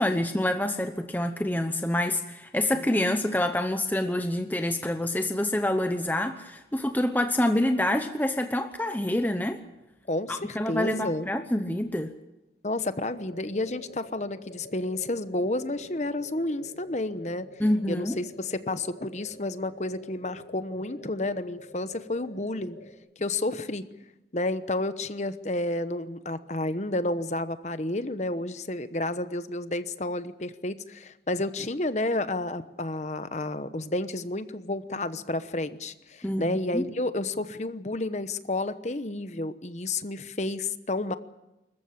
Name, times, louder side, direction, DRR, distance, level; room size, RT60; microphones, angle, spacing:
voice 1, 0.0-9.6 10.3-12.1 17.6-18.2 36.2-36.9, left 1 dB, 10° left, 7 dB, 0.9 m, -27 dB
voice 2, 10.1-11.3 12.6-17.5 17.9-22.8 23.2-23.8 24.3-41.2, left 2 dB, 40° left, 12 dB, 1.0 m, -31 dB
sound 1, 13.0-22.9, left 2 dB, 80° left, 3.3 m, -48 dB
25.5 x 14.5 x 8.7 m, 0.99 s
head